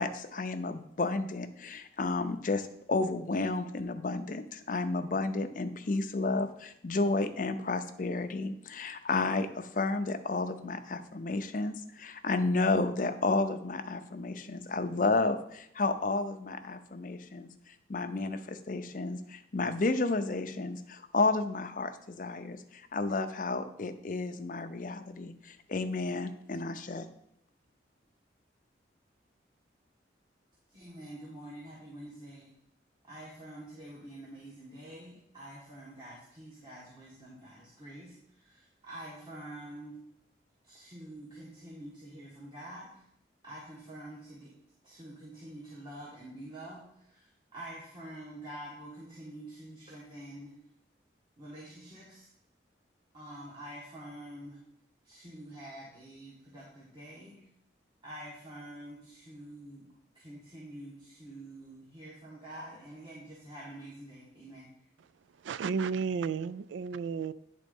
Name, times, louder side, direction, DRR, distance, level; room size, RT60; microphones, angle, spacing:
voice 1, 0.0-17.5 17.9-27.1, left 3 dB, 45° left, 8 dB, 0.5 m, -32 dB
voice 2, 30.7-32.5 33.1-40.0 40.6-43.0 43.4-44.5 44.8-50.5 51.4-52.3 53.1-54.6 55.0-57.3 58.0-59.9 60.1-64.9, right 1 dB, 25° right, -6 dB, 1.4 m, -47 dB
voice 3, 65.4-67.3, right 6 dB, 85° right, 17 dB, 0.3 m, -32 dB
9.4 x 3.8 x 5.3 m, 0.75 s
head